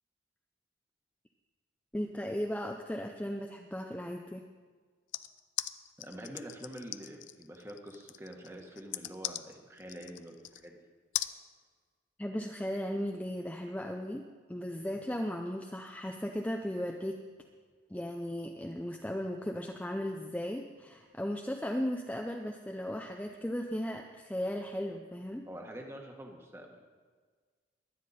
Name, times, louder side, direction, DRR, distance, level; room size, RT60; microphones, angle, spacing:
voice 1, 1.9-4.4 12.2-17.2 17.9-25.5, equal, 10° left, 2 dB, 0.5 m, -36 dB
sound 1, 5.1-10.7 11.1-11.3, left 14 dB, 80° left, 0.5 m, -39 dB
voice 2, 6.0-10.9 14.9-15.0 25.5-26.8, right 1 dB, 15° right, 2 dB, 1.5 m, -46 dB
23.0 x 9.6 x 4.3 m, 1.5 s
head